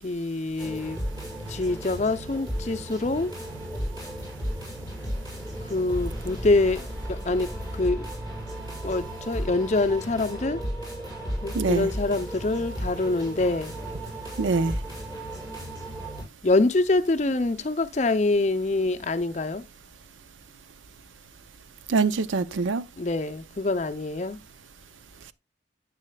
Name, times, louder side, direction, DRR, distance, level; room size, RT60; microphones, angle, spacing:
voice 1, 0.0-1.0 1.5-3.3 5.7-8.1 8.8-10.6 11.4-13.7 16.4-19.6 23.0-24.4, left 2 dB, 35° left, 0.5 m, -25 dB
sound 1, 0.6-16.2, equal, 20° right, 6.4 m, -34 dB
voice 2, 11.5-11.9 14.4-14.7 21.9-22.8, right 4 dB, 85° right, 0.5 m, -24 dB
9.7 x 8.4 x 2.3 m
head